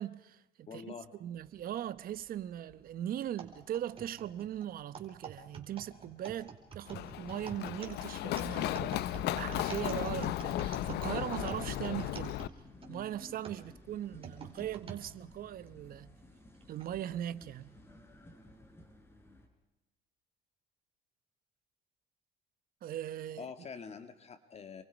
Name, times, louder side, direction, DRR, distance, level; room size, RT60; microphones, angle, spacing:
voice 1, 0.0-0.9 1.2-12.4 12.9-16.2 16.7-17.8 22.8-23.5, right 11 dB, 60° right, 1.0 m, -39 dB
voice 2, 0.7-1.1 23.4-24.8, left 6 dB, 40° left, 2.0 m, -45 dB
sound 1, 1.3-19.5, left 1 dB, 15° left, 4.3 m, -58 dB
sound 2, 3.4-12.9 13.4-15.0 15.7-15.8 16.6-16.9, right 6 dB, 35° right, 4.5 m, -47 dB
Run, 6.9-12.5, left 13 dB, 75° left, 0.8 m, -35 dB
29.5 x 23.0 x 5.3 m
cardioid pair, 110°, 17 cm